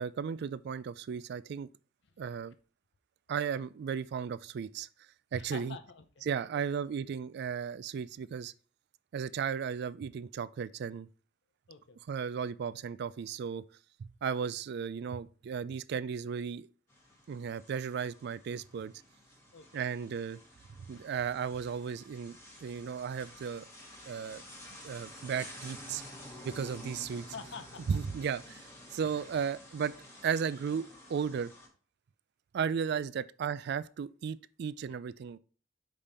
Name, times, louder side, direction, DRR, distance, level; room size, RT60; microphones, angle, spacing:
voice 1, 0.0-1.7 2.2-2.5 3.3-4.9 5.3-5.8 6.2-8.5 9.1-11.1 12.1-13.6 14.0-16.7 17.3-18.9 19.7-20.4 20.8-23.7 24.1-24.4 24.8-26.0 26.4-27.2 27.9-28.7 28.9-29.9 30.2-31.5 32.5-35.4, right 7 dB, 60° right, 0.3 m, -35 dB
voice 2, 5.3-6.6 11.7-12.0 17.1-17.2 19.5-19.8 20.9-21.0 27.3-27.9 28.5-28.6 29.0-29.3 32.9-33.0 34.8-34.9, left 5 dB, 65° left, 0.7 m, -48 dB
sound 1, 16.9-31.7, left 1 dB, 15° left, 1.6 m, -51 dB
5.2 x 5.2 x 4.2 m
head